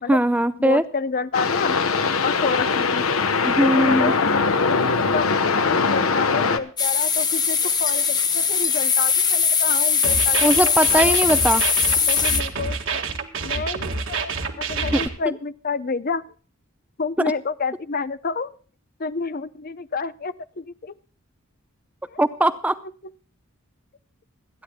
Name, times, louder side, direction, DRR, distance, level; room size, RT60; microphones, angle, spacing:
voice 1, 0.1-0.8 3.4-4.1 10.4-11.6 14.9-15.0 22.2-22.8, right 1 dB, 5° right, 12 dB, 0.5 m, -19 dB
voice 2, 0.6-1.8 2.2-3.0 3.6-5.3 5.5-11.3 12.1-13.0 13.4-14.4 14.7-16.2 17.0-18.5 19.0-20.9 22.1-22.2 23.0-23.1, left 4 dB, 45° left, 14 dB, 0.6 m, -29 dB
sound 1, 1.3-6.6, left 4 dB, 80° left, 1.1 m, -21 dB
sound 2, 6.8-12.4, left 6 dB, 20° left, 1.0 m, -20 dB
sound 3, 10.0-15.1, right 4 dB, 60° right, 1.7 m, -28 dB
27.5 x 10.5 x 2.2 m, 0.40 s
head